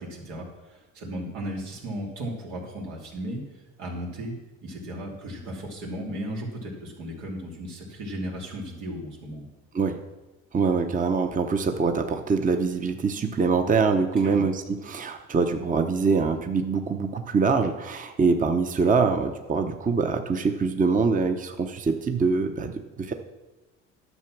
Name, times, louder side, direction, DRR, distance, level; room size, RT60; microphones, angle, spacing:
voice 1, 0.0-3.4 3.8-4.4 4.6-9.5 14.2-14.4, right 1 dB, 90° right, -2 dB, 2.9 m, -35 dB
voice 2, 10.5-23.1, right 4 dB, 25° right, 6 dB, 0.8 m, -24 dB
11.0 x 6.8 x 6.0 m, 1.2 s
cardioid pair, 100°, 29 cm